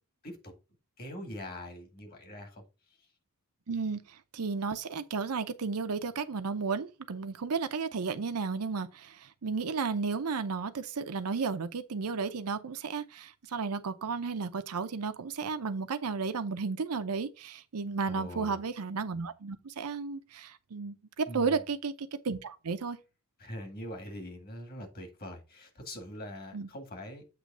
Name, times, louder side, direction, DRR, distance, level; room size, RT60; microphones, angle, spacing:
voice 1, 1.0-2.6 18.1-18.6 21.3-21.6 23.4-27.2, left 1 dB, 45° left, 1.9 m, -43 dB
voice 2, 3.7-23.0 26.5-26.7, right 5 dB, 80° right, 0.7 m, -33 dB
7.9 x 3.1 x 6.1 m
head